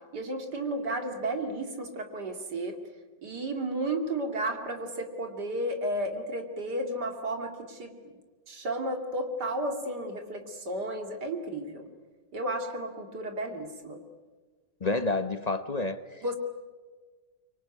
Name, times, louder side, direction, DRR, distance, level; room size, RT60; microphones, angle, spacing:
voice 1, 0.1-2.8 3.2-7.9 8.5-11.9 12.3-14.0 16.2-16.4, right 1 dB, 60° right, 5 dB, 3.0 m, -33 dB
voice 2, 14.8-16.3, left 2 dB, 35° left, 11 dB, 0.7 m, -30 dB
25.0 x 25.0 x 9.5 m, 1.4 s
omnidirectional pair, 2.0 m